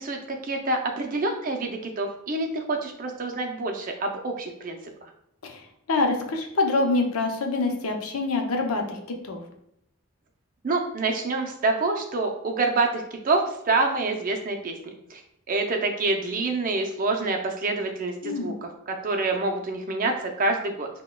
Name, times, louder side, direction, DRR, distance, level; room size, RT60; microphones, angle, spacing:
voice 1, 0.0-5.1 10.6-15.2 15.5-20.9, right 3 dB, 40° right, 3 dB, 0.5 m, -27 dB
voice 2, 5.4-9.4 18.2-18.6, left 3 dB, 80° left, 3 dB, 0.6 m, -26 dB
6.0 x 2.2 x 2.2 m, 0.76 s
head